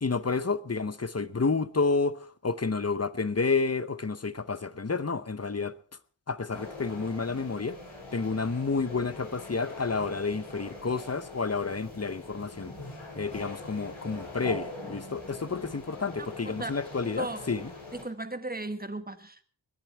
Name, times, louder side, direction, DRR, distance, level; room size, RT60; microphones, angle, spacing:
voice 1, 0.0-5.7 6.3-7.8 8.1-12.7 13.2-17.7, left 4 dB, 35° left, 0.9 m, -30 dB
sound 1, 6.5-18.0, left 2 dB, 85° left, 5.5 m, -42 dB
voice 2, 17.1-17.5 17.9-19.4, right 2 dB, 20° right, 1.4 m, -36 dB
21.0 x 10.5 x 4.6 m
wide cardioid pair, 55°, 46 cm